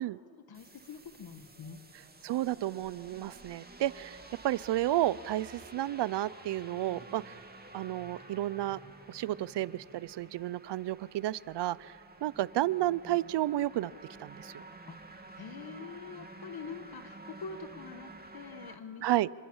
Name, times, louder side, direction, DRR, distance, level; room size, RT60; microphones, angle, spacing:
voice 1, 0.3-1.8 14.9-19.1, left 5 dB, 60° left, 10 dB, 2.0 m, -45 dB
sound 1, 0.5-18.8, right 2 dB, 25° right, 2.8 m, -51 dB
voice 2, 2.2-4.2 4.4-7.4 7.7-8.8 9.1-11.9 12.2-13.9 14.2-14.6 19.0-19.3, right 14 dB, 80° right, 21 dB, 0.7 m, -31 dB
29.0 x 26.5 x 7.2 m, 2.1 s
cardioid pair, 75°, 41 cm